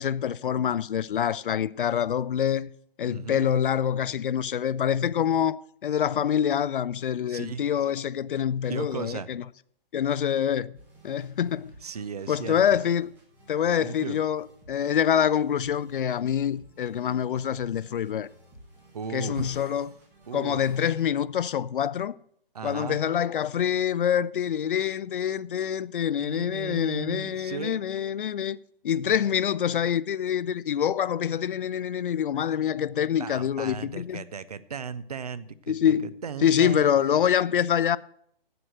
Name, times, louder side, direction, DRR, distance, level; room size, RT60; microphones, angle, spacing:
voice 1, 0.0-2.7 3.0-9.4 9.9-10.7 11.0-11.7 12.3-13.1 13.5-18.3 19.1-19.9 20.3-22.2 22.6-28.6 28.8-34.2 35.7-36.1 36.4-38.0, left 9 dB, 60° left, 0.4 m, -26 dB
voice 2, 3.1-3.5 7.3-7.7 8.7-9.3 11.8-12.6 13.8-14.2 18.9-19.7 20.3-20.6 22.5-23.0 26.2-27.8 33.2-36.9, right 6 dB, 40° right, 0.5 m, -36 dB
sound 1, 10.7-21.1, right 1 dB, 5° right, 1.4 m, -54 dB
8.0 x 7.9 x 7.7 m
hypercardioid pair, 170°, 30 cm